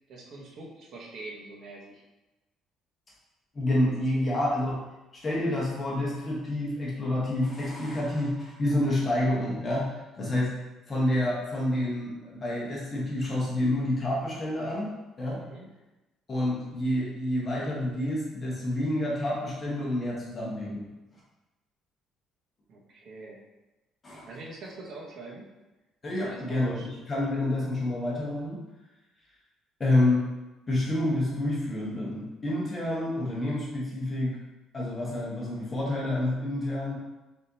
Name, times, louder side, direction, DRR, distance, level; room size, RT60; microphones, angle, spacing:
voice 1, 0.1-2.0 4.1-4.3 15.4-15.7 22.7-23.4 24.3-25.5 26.1-26.9, right 3 dB, 55° right, -3 dB, 0.9 m, -44 dB
voice 2, 3.5-4.8 5.1-10.5 10.9-15.4 16.3-20.8 24.0-24.3 26.0-28.6 29.8-30.2 30.7-34.4 34.7-36.9, left 1 dB, 25° left, -5 dB, 1.0 m, -28 dB
4.3 x 3.6 x 2.7 m, 1.1 s
cardioid pair, 145°, 0 cm